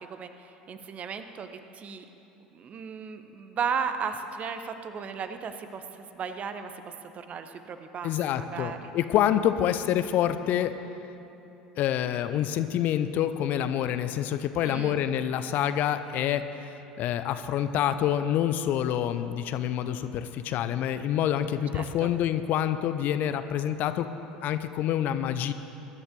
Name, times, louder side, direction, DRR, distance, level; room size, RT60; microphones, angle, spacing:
voice 1, 0.0-2.0 2.5-8.9 14.6-15.0 21.7-22.1, right 6 dB, 35° right, 8 dB, 1.0 m, -36 dB
voice 2, 8.0-10.7 11.8-16.4 17.0-24.1 24.4-25.5, left 10 dB, 45° left, 11 dB, 0.6 m, -27 dB
22.0 x 10.5 x 3.9 m, 3.0 s
figure-of-eight pair, 70°, 4 cm